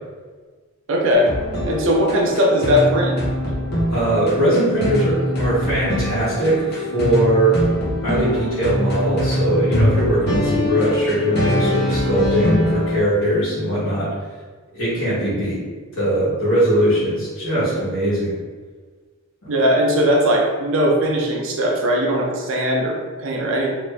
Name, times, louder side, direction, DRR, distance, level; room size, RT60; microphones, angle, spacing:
voice 1, 0.9-1.3 1.7-3.2 19.5-23.7, equal, 60° right, 0 dB, 0.5 m, -19 dB
sound 1, 1.1-13.0, left 1 dB, 50° left, 0.9 m, -23 dB
voice 2, 3.9-7.6 8.0-14.1 14.7-15.6 15.9-18.3, right 1 dB, 65° left, -11 dB, 1.3 m, -20 dB
2.8 x 2.5 x 3.3 m, 1.4 s
head